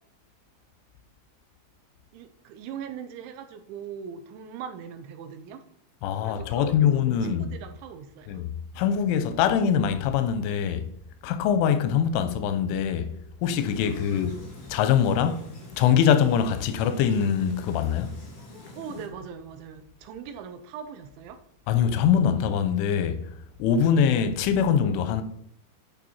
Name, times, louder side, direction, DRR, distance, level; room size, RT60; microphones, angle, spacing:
voice 1, 2.1-5.6 6.2-6.8 7.1-8.4 13.8-14.3 18.8-21.4, right 7 dB, 80° right, 3.0 m, -40 dB
voice 2, 6.0-7.5 8.3-10.9 11.2-13.1 13.4-14.4 14.7-15.5 15.8-18.2 21.7-23.3 23.6-25.2, left 8 dB, 85° left, 3.1 m, -23 dB
sound 1, 13.4-19.1, left 2 dB, 55° left, 1.0 m, -45 dB
11.0 x 4.5 x 4.2 m
omnidirectional pair, 5.5 m